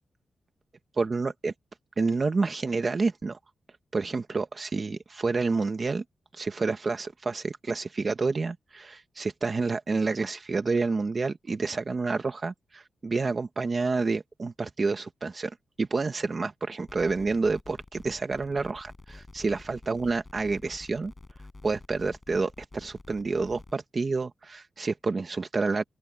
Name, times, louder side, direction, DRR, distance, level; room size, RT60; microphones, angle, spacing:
voice 1, 1.0-1.5 2.0-3.4 3.9-6.0 6.3-21.1 21.6-25.8, right 4 dB, 35° right, 1.2 m, -29 dB
sound 1, 16.8-23.7, left 2 dB, 20° left, 6.9 m, -49 dB
open air
wide cardioid pair, 155°, 0 cm